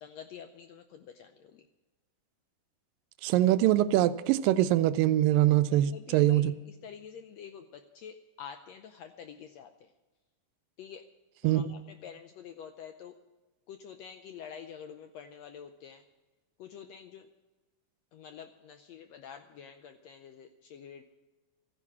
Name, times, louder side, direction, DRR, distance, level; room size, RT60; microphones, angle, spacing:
voice 1, 0.0-1.6 5.7-9.7 10.8-11.0 11.4-13.1 13.7-16.0 16.6-17.3 18.1-21.0, left 8 dB, 85° left, 8 dB, 1.5 m, -47 dB
voice 2, 3.2-6.5 11.4-11.7, right 13 dB, 85° right, 13 dB, 2.2 m, -24 dB
14.0 x 10.0 x 7.3 m, 1.2 s
omnidirectional pair, 3.9 m